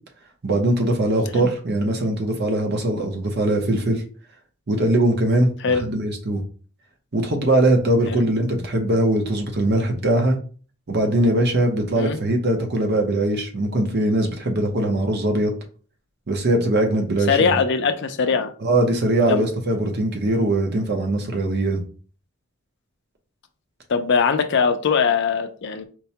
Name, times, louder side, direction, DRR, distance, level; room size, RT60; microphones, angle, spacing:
voice 1, 0.4-4.0 4.7-6.4 7.1-10.4 10.9-15.5 16.3-17.6 18.6-21.8, right 1 dB, 50° right, 3 dB, 0.8 m, -21 dB
voice 2, 17.3-18.5 19.2-19.5 23.9-25.8, left 5 dB, 55° left, 8 dB, 0.4 m, -21 dB
4.5 x 2.2 x 2.8 m, 0.39 s
head